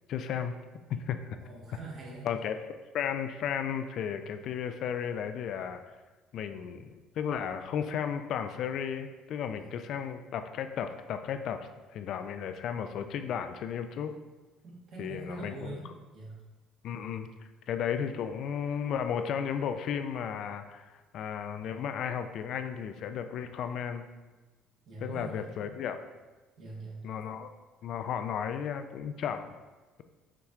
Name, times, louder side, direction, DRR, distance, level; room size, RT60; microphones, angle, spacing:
voice 1, 0.1-0.6 0.9-1.2 2.2-2.6 2.9-5.8 6.3-11.6 11.9-14.1 15.0-15.7 16.8-24.1 25.0-26.0 27.0-27.5 27.8-29.5, left 8 dB, 60° left, 8 dB, 0.3 m, -34 dB
voice 2, 1.4-2.3 9.5-9.7 14.6-16.3 24.9-25.7 26.6-27.0, right 2 dB, 60° right, -4 dB, 1.4 m, -43 dB
5.7 x 3.0 x 2.4 m, 1.2 s
supercardioid pair, 70°, 0 cm